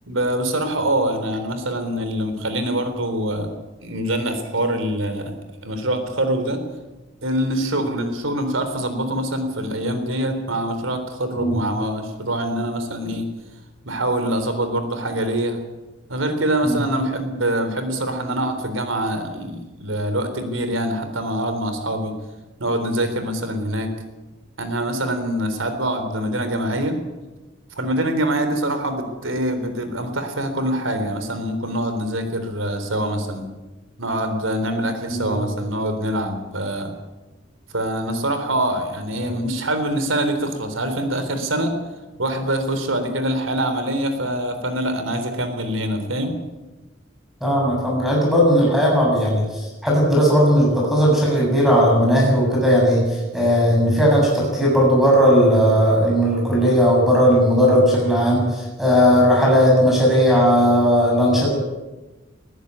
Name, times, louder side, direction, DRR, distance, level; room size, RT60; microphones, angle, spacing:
voice 1, 0.1-3.5 3.8-6.6 7.2-13.3 13.9-15.6 16.1-22.2 22.6-23.9 24.6-27.0 27.8-33.5 34.0-36.9 37.7-41.7 42.2-46.3, right 1 dB, 90° right, 8 dB, 3.8 m, -24 dB
voice 2, 35.1-35.4 39.2-39.3 47.4-61.5, equal, ahead, -3 dB, 7.3 m, -17 dB
20.5 x 15.0 x 9.7 m, 1.1 s
head